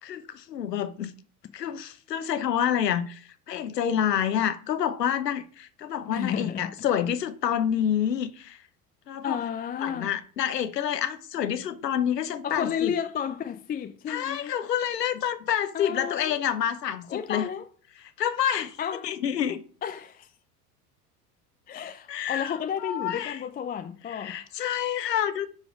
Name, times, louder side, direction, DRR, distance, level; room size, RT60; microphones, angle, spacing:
voice 1, 0.0-1.1 1.5-8.6 9.1-9.4 9.8-12.9 14.1-17.5 18.2-18.8 19.0-19.6 22.1-22.6 22.8-23.4 24.1-25.5, left 9 dB, 80° left, 1.0 m, -28 dB
voice 2, 6.0-6.7 9.2-10.1 12.4-14.5 15.7-16.4 17.1-17.7 18.8-19.1 19.8-20.3 21.7-24.4, left 8 dB, 20° left, 0.5 m, -32 dB
9.7 x 5.0 x 5.0 m
figure-of-eight pair, 75°, 48 cm